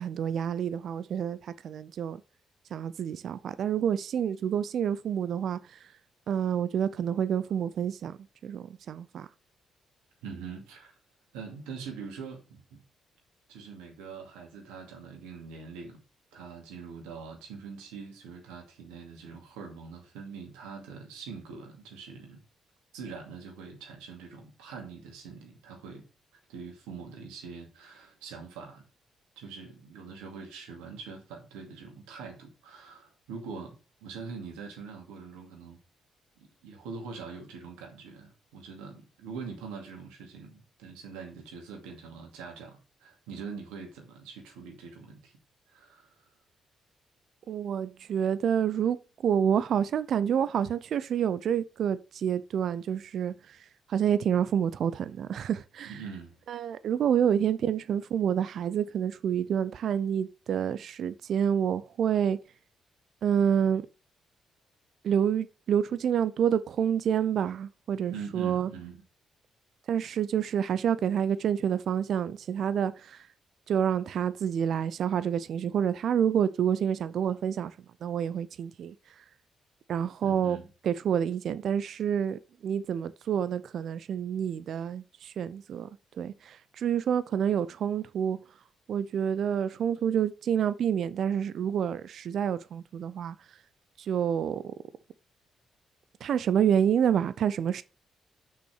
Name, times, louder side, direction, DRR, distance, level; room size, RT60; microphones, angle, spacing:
voice 1, 0.0-2.2 2.7-5.6 6.3-8.2 8.4-9.3 47.5-53.6 53.9-55.9 56.5-62.4 63.2-63.8 65.0-68.7 69.9-73.2 73.7-77.7 78.0-78.9 79.9-80.6 80.8-85.9 86.2-88.4 88.9-93.4 94.0-94.6 96.2-97.8, right 8 dB, 60° right, 0.5 m, -28 dB
voice 2, 10.2-10.9 11.3-12.8 13.5-16.0 16.3-22.4 22.9-26.1 26.5-28.8 29.4-35.8 36.4-45.3 45.7-46.2 55.8-56.4 57.4-57.5 68.1-69.0 80.2-80.7, right 5 dB, 75° right, 2.3 m, -43 dB
6.1 x 5.6 x 6.4 m
hypercardioid pair, 40°, 0 cm